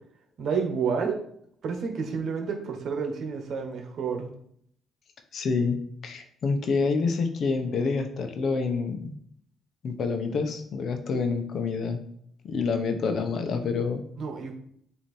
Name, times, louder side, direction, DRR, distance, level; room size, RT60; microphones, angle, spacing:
voice 1, 0.4-1.2 1.6-4.3 14.2-14.5, right 5 dB, 65° right, 4 dB, 1.2 m, -29 dB
voice 2, 5.3-5.8 6.0-9.1 9.8-12.0 12.4-14.0, left 4 dB, 60° left, 6 dB, 0.9 m, -27 dB
7.7 x 2.9 x 4.3 m, 0.67 s
cardioid pair, 90°, 0 cm